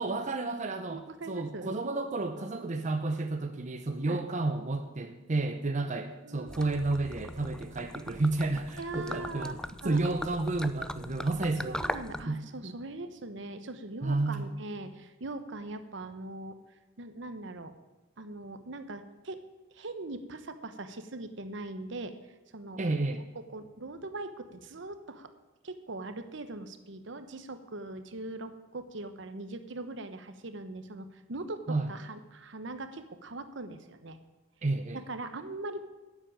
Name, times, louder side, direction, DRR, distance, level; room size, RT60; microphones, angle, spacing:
voice 1, 0.0-1.0 1.3-9.6 9.8-11.9 12.3-12.7 14.0-14.5 22.8-23.2 31.7-31.9 34.6-35.0, right 2 dB, 40° right, 7 dB, 0.7 m, -31 dB
voice 2, 0.9-1.7 4.0-4.2 6.2-6.7 8.8-9.5 9.8-10.0 11.7-16.6 17.0-17.7 18.2-19.4 19.7-22.1 22.5-22.8 23.3-25.3 25.6-34.2 35.1-35.9, right 2 dB, 70° right, 9 dB, 1.0 m, -41 dB
Gurgling / Liquid, 6.5-12.3, left 1 dB, 5° left, 0.4 m, -40 dB
10.5 x 7.4 x 8.8 m, 1.1 s
head